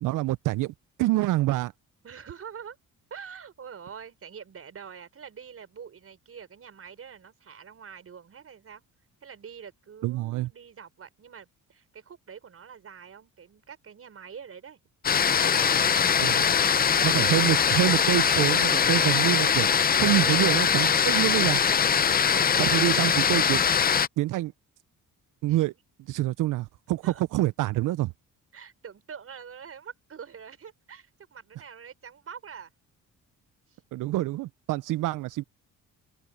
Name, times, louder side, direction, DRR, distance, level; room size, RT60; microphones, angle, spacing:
voice 1, 0.0-1.7 10.0-10.5 16.2-16.4 17.0-19.7 20.0-21.6 22.6-23.6 24.2-24.5 25.4-25.7 26.0-28.1 33.9-35.4, right 16 dB, 70° right, 0.5 m, -26 dB
voice 2, 2.0-2.8 3.1-8.8 9.2-14.8 15.1-16.0 20.2-20.4 22.1-22.9 25.5-25.6 27.0-27.2 28.5-32.7 33.7-33.8, right 7 dB, 45° right, 5.8 m, -45 dB
sound 1, 15.0-24.1, left 7 dB, 30° left, 0.5 m, -22 dB
open air
cardioid pair, 120°, 32 cm